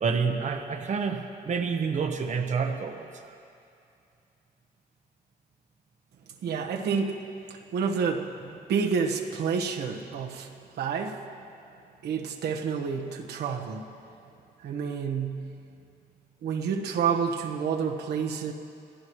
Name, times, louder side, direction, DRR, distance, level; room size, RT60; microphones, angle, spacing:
voice 1, 0.0-3.4, right 5 dB, 45° right, 4 dB, 1.0 m, -28 dB
voice 2, 6.4-11.2 12.0-13.8 14.6-15.6 16.4-18.5, right 6 dB, 85° right, 2 dB, 1.3 m, -29 dB
27.0 x 16.0 x 3.2 m, 2.6 s
cardioid pair, 120°, 17 cm